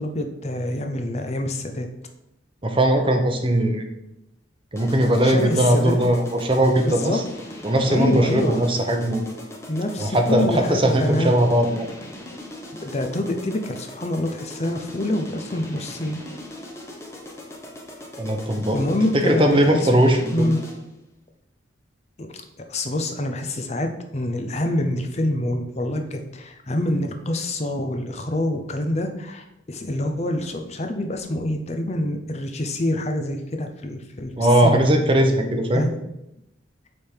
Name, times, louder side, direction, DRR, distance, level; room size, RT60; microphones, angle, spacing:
voice 1, 0.0-1.9 5.2-5.9 6.9-7.2 7.9-8.6 9.7-11.3 12.8-16.2 18.7-19.9 20.3-20.6 22.2-22.4 22.7-34.9 35.7-36.0, left 1 dB, 35° left, 5 dB, 0.7 m, -26 dB
voice 2, 2.6-3.8 4.7-7.2 7.6-9.2 10.0-11.9 18.2-18.8 19.1-20.4 34.4-35.8, right 1 dB, 25° right, 5 dB, 0.8 m, -19 dB
sound 1, 4.8-20.9, left 1 dB, 15° left, 1.0 m, -39 dB
8.3 x 3.6 x 4.5 m, 0.86 s
head